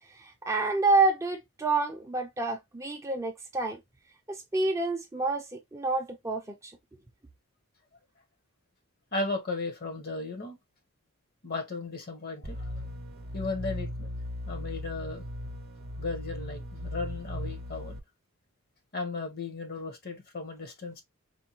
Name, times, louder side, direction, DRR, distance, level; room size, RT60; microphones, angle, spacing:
voice 1, 0.1-3.8 4.3-6.7, right 3 dB, 15° right, 0.5 m, -28 dB
voice 2, 9.1-10.6 11.4-12.7 13.3-14.1 14.5-15.3 16.0-18.0 18.9-21.0, left 3 dB, 45° left, 1.0 m, -35 dB
sound 1, 12.4-18.0, left 1 dB, 45° right, 0.7 m, -38 dB
4.4 x 2.3 x 2.8 m
head